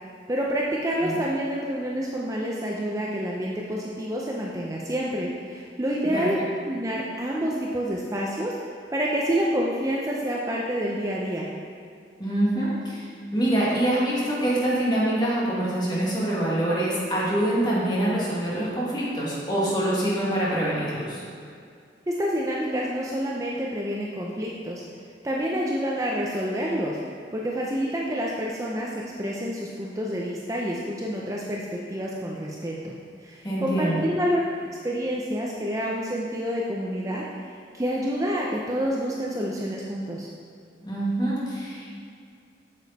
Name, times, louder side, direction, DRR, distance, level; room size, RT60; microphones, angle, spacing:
voice 1, 0.3-6.4 6.6-8.6 8.9-11.5 22.1-24.8 25.2-27.0 27.3-33.0 33.2-34.4 34.8-37.2 37.7-40.3, equal, 20° right, -3 dB, 0.6 m, -28 dB
voice 2, 12.2-13.1 13.3-21.2 33.4-34.0 40.8-41.9, right 1 dB, 25° left, -7 dB, 2.1 m, -25 dB
8.3 x 7.1 x 4.2 m, 2.3 s
head